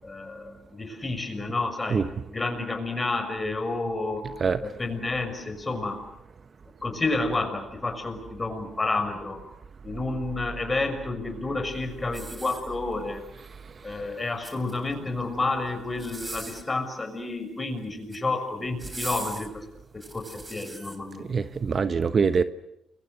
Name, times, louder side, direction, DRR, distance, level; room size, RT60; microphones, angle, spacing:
voice 1, 0.0-4.2 4.6-6.0 6.8-9.4 9.8-13.2 13.8-19.6 19.9-21.3, left 3 dB, 20° left, 6 dB, 6.2 m, -30 dB
sound 1, 12.1-13.1 14.2-15.0 15.9-16.8 17.8-18.3 18.8-21.0 21.6-21.7, right 2 dB, 15° right, 3.7 m, -40 dB
voice 2, 21.3-22.4, right 5 dB, 40° right, 12 dB, 1.0 m, -23 dB
29.0 x 23.0 x 7.9 m, 0.81 s
cardioid pair, 90°, 0 cm